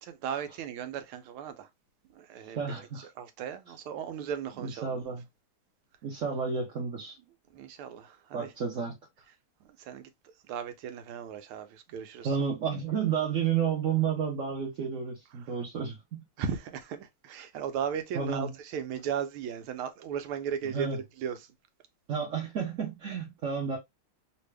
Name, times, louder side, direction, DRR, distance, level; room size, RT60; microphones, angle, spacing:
voice 1, 0.0-1.7 2.1-2.6 3.2-5.0 7.5-8.5 9.6-10.1 10.5-12.3 16.4-21.4, right 8 dB, 85° right, 1.5 m, -36 dB
voice 2, 2.6-3.1 4.6-5.2 6.0-7.2 8.3-8.9 12.2-16.2 18.1-18.5 20.7-21.0 22.1-23.8, right 6 dB, 55° right, 0.9 m, -31 dB
3.3 x 2.6 x 3.2 m
omnidirectional pair, 2.3 m